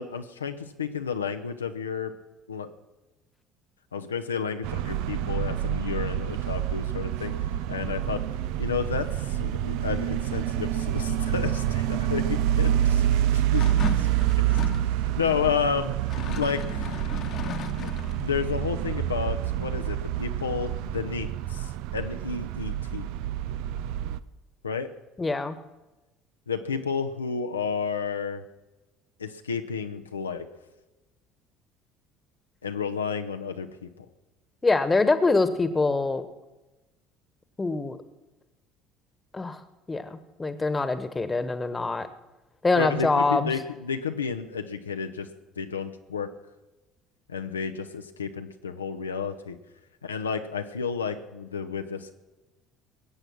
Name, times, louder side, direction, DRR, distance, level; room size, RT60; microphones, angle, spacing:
voice 1, 0.0-2.1 2.5-2.7 3.9-7.3 7.7-8.2 8.6-13.0 13.3-13.7 14.0-14.1 14.8-15.9 16.4-17.1 18.2-23.0 24.6-24.9 26.5-28.4 29.2-30.5 32.6-34.0 42.7-45.3 45.6-46.3 47.3-49.6 50.0-52.1, left 6 dB, 80° left, 6 dB, 0.8 m, -31 dB
sound 1, 4.6-24.2, right 11 dB, 60° right, 0.5 m, -27 dB
sound 2, 13.6-14.9 16.0-18.2, left 8 dB, 45° left, 1.2 m, -36 dB
voice 2, 25.2-25.6 34.6-36.2 37.6-38.0 39.3-39.6 39.9-42.1 42.6-43.5, left 3 dB, 20° left, 12 dB, 1.4 m, -24 dB
21.5 x 9.0 x 6.0 m, 1.1 s
figure-of-eight pair, 60°, 0 cm